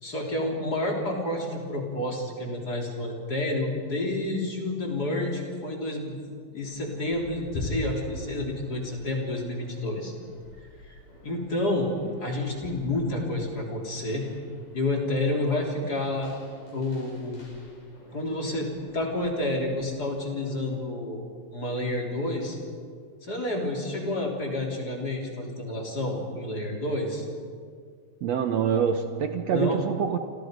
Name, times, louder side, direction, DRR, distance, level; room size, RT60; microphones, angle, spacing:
voice 1, 0.0-6.3 6.5-10.1 10.9-11.0 11.2-11.9 12.2-14.2 14.7-16.3 16.7-17.4 18.1-21.2 21.5-22.6 23.2-27.3 29.5-29.8, left 1 dB, 25° left, 0 dB, 3.5 m, -29 dB
sound 1, 6.6-20.8, left 1 dB, 80° left, 8.1 m, -44 dB
voice 2, 28.2-30.2, right 7 dB, 80° right, 7 dB, 1.5 m, -25 dB
29.5 x 26.5 x 5.2 m, 2.1 s
omnidirectional pair, 4.4 m